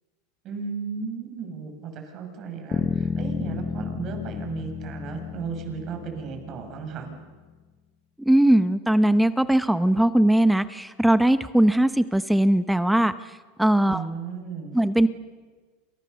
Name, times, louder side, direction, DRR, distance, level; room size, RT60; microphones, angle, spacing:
voice 1, 0.4-7.1 13.9-14.8, right 6 dB, 40° right, 4 dB, 7.0 m, -35 dB
Bass guitar, 2.7-7.1, left 6 dB, 25° left, 0.9 m, -31 dB
voice 2, 8.2-13.1 13.6-14.0 14.7-15.1, right 1 dB, 5° right, 13 dB, 0.8 m, -20 dB
29.0 x 28.0 x 7.0 m, 1.4 s
supercardioid pair, 135°, 0 cm